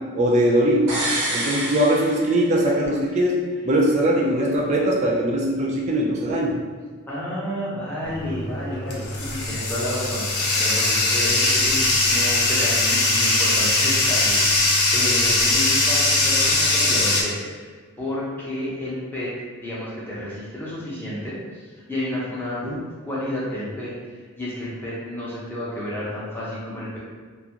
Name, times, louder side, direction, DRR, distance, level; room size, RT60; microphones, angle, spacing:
voice 1, 0.1-0.9 1.3-6.6 22.6-22.8, right 1 dB, 30° right, -2 dB, 0.3 m, -21 dB
sound 1, 0.9-2.8 3.1-3.2, right 1 dB, 75° right, 0.9 m, -27 dB
voice 2, 7.1-17.7 18.0-19.3 19.6-22.6 23.0-27.0, left 1 dB, 10° left, -8 dB, 0.6 m, -31 dB
Bathtub (filling or washing), 8.0-17.2, left 2 dB, 85° left, 0.5 m, -21 dB
2.5 x 2.3 x 2.8 m, 1.5 s
head